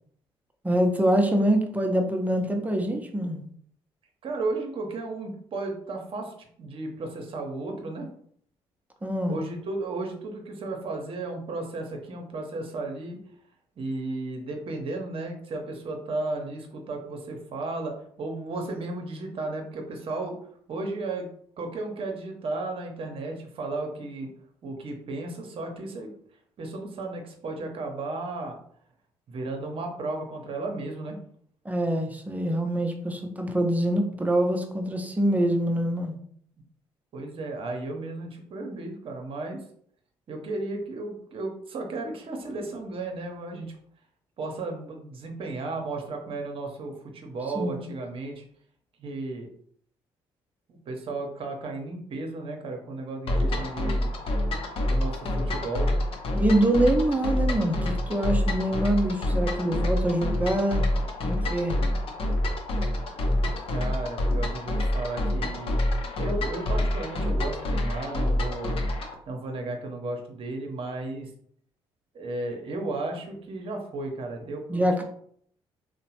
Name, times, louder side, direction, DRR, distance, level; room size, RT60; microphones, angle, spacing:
voice 1, 0.6-3.4 9.0-9.4 31.6-36.1 47.5-47.8 56.3-60.9 61.2-61.8 74.7-75.0, right 1 dB, 15° right, 4 dB, 0.6 m, -25 dB
voice 2, 4.2-8.1 9.3-13.2 13.8-20.4 20.7-21.3 21.6-24.3 24.6-26.1 26.6-28.6 29.3-31.2 37.1-39.6 40.3-43.7 44.4-48.4 49.0-49.5 50.7-54.1 54.9-55.9 63.2-65.8 66.2-68.9 69.3-71.3 72.1-74.8, right 2 dB, 55° right, 2 dB, 0.8 m, -34 dB
sound 1, 53.3-69.1, left 1 dB, 55° left, 0.6 m, -27 dB
2.9 x 2.1 x 2.9 m, 0.62 s
hypercardioid pair, 55°, 11 cm